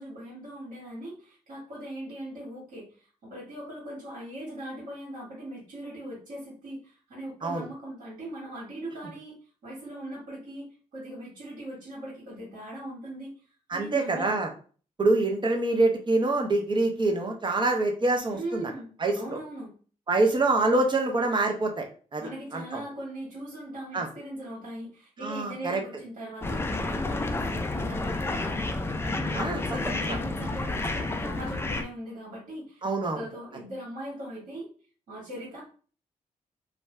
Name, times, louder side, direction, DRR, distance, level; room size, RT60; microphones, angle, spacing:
voice 1, 0.0-13.3 13.7-14.4 18.3-19.7 22.2-32.8 33.1-34.7 35.1-35.6, right 1 dB, 75° right, -6 dB, 1.5 m, -40 dB
voice 2, 13.7-14.5 15.0-18.6 19.0-19.4 20.1-21.8 22.1-22.8 23.9-24.1 25.2-25.8 29.3-29.6 32.8-33.2, right 2 dB, 35° right, 3 dB, 0.7 m, -25 dB
sound 1, 26.4-31.8, left 2 dB, 15° left, 0.4 m, -30 dB
2.6 x 2.2 x 3.2 m, 0.41 s
cardioid pair, 70°, 14 cm